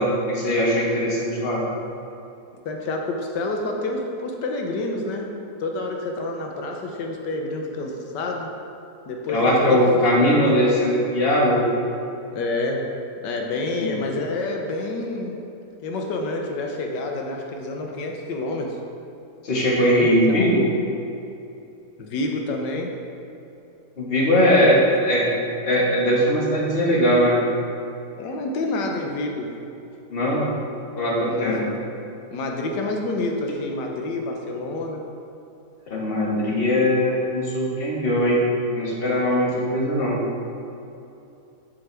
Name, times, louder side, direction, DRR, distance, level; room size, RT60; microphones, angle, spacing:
voice 1, 0.0-1.6 9.3-11.6 13.8-13.9 19.4-20.6 24.0-24.8 25.1-25.2 25.6-27.4 30.1-30.4 31.0-31.6 35.9-40.2, equal, 35° left, -4 dB, 1.5 m, -20 dB
voice 2, 2.6-5.3 5.6-8.5 9.1-10.6 12.3-12.8 13.2-15.4 15.8-18.8 19.8-20.5 22.0-22.9 24.6-24.8 28.1-29.5 31.3-31.6 32.3-35.0, left 2 dB, 90° left, 2 dB, 1.5 m, -28 dB
8.5 x 7.4 x 3.4 m, 2.8 s
omnidirectional pair, 1.8 m